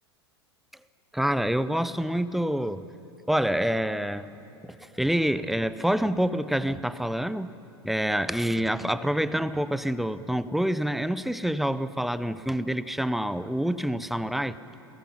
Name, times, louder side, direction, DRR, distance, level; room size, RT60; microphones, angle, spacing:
voice 1, 1.1-2.9 3.3-4.3 4.6-7.5 7.8-14.6, equal, ahead, 15 dB, 0.5 m, -27 dB
28.0 x 19.0 x 5.7 m, 2.9 s
figure-of-eight pair, 85°, 14 cm